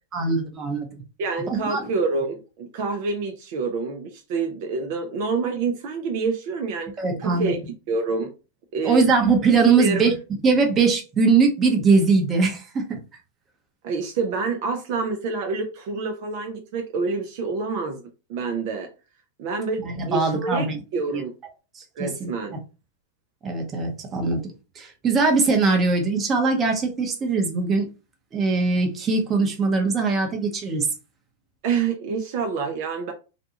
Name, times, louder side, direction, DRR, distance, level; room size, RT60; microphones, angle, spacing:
voice 1, 0.1-0.9 1.5-1.9 7.0-7.5 8.8-10.1 10.4-13.0 19.8-20.8 21.1-21.2 21.8-22.3 23.4-24.5 24.8-27.9 28.3-30.9, right 4 dB, 25° right, 0.8 m, -21 dB
voice 2, 1.2-6.9 7.2-7.6 7.9-8.3 8.7-9.1 9.8-10.1 13.8-18.0 18.3-18.9 19.4-21.3 22.0-22.5 31.6-33.1, right 4 dB, 55° right, 0.5 m, -27 dB
2.5 x 2.3 x 2.8 m
hypercardioid pair, 120°, 0 cm